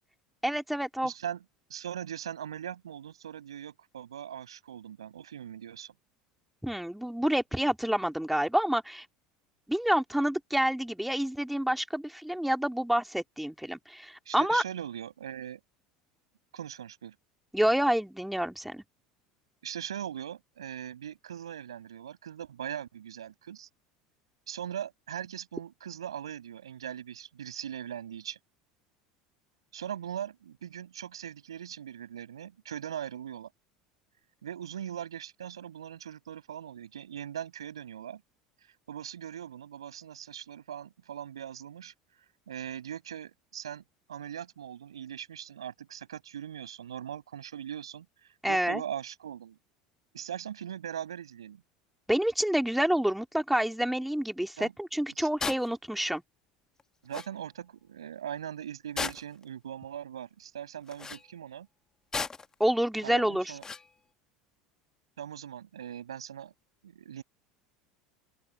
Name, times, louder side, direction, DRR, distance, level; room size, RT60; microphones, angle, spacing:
voice 1, 0.4-1.1 6.6-9.0 9.7-14.6 17.5-18.8 48.4-48.8 52.1-56.2 62.6-63.5, right 1 dB, 5° right, 2.9 m, -28 dB
voice 2, 1.0-1.4 1.7-5.9 14.3-15.6 16.5-17.1 19.6-23.7 24.5-28.4 29.7-33.5 34.4-38.2 38.9-41.9 42.5-43.8 44.1-48.1 48.5-49.6 50.1-51.6 54.6-54.7 55.2-55.3 57.0-61.7 63.0-63.6 65.2-66.5 66.8-67.2, right 9 dB, 80° right, 6.3 m, -40 dB
sound 1, 55.4-55.7 56.8-56.9 57.1-57.3 59.0-59.4 60.9-61.2 62.1-62.5 63.6-63.9, left 4 dB, 20° left, 1.5 m, -34 dB
open air
hypercardioid pair, 75°, 3 cm